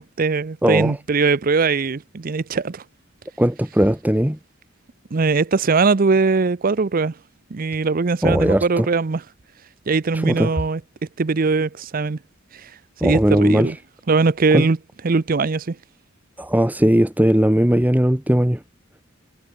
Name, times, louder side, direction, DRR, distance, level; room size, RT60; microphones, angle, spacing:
voice 1, 0.0-2.8 5.1-7.1 7.5-9.2 9.9-10.8 11.2-12.2 12.5-12.7 13.0-13.8 14.1-14.8 15.0-15.8, right 4 dB, 45° right, 0.6 m, -20 dB
voice 2, 0.6-1.0 3.4-4.4 8.2-8.9 10.1-10.5 13.0-13.7 14.5-14.7 16.4-18.6, equal, 10° right, 1.1 m, -18 dB
head